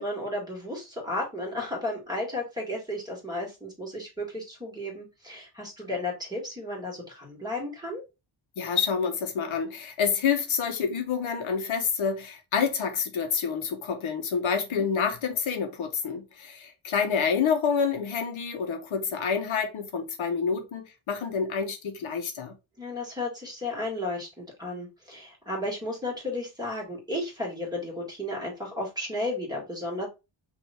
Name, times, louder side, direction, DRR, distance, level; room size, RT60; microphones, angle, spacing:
voice 1, 0.0-8.0 14.8-14.9 22.8-30.1, left 1 dB, 10° right, 1.9 m, -33 dB
voice 2, 8.6-22.5, left 6 dB, 80° left, 1.1 m, -28 dB
5.3 x 2.8 x 3.4 m
wide cardioid pair, 155°, 48 cm